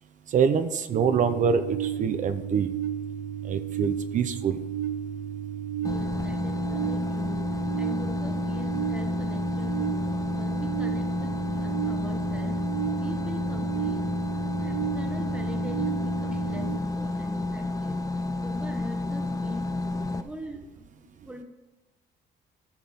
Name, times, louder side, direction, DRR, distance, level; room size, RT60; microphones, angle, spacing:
voice 1, 0.3-2.7 3.5-4.6, right 6 dB, 50° right, 9 dB, 0.7 m, -25 dB
sound 1, 0.9-16.8, right 9 dB, 85° right, 0.5 m, -33 dB
sound 2, 5.8-20.2, left 2 dB, 20° left, 0.6 m, -30 dB
voice 2, 5.8-7.4 7.8-10.0 10.3-12.6 13.0-14.1 14.6-19.7 20.2-21.4, equal, 5° right, 4 dB, 1.3 m, -42 dB
14.0 x 5.7 x 3.7 m, 1.1 s
cardioid pair, 110°, 17 cm